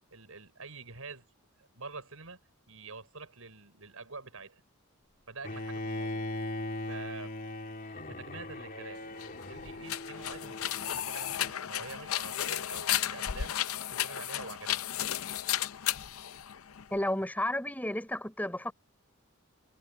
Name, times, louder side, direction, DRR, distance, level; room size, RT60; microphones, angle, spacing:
voice 1, 0.1-1.3 1.6-2.4 2.7-4.6 5.3-6.3 6.9-7.3 8.1-9.0 9.5-13.5 13.8-14.9, right 4 dB, 80° right, 5.7 m, -46 dB
Bowed string instrument, 5.4-11.5, left 1 dB, 40° left, 2.8 m, -39 dB
sound 1, 9.1-17.0, left 11 dB, 80° left, 0.6 m, -34 dB
voice 2, 16.9-18.7, left 1 dB, 10° left, 4.5 m, -32 dB
head